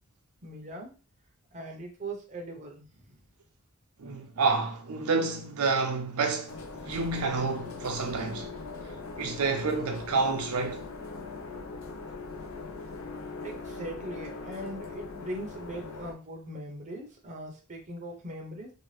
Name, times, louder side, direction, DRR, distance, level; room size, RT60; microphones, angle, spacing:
voice 1, 0.4-0.9 1.5-3.2 13.4-18.7, right 1 dB, 30° right, 0.6 m, -40 dB
voice 2, 4.0-6.6 6.8-8.5 9.2-10.8, right 4 dB, 80° right, 0.6 m, -29 dB
sound 1, 6.5-16.1, left 4 dB, 65° left, 0.5 m, -41 dB
2.7 x 2.2 x 3.1 m
head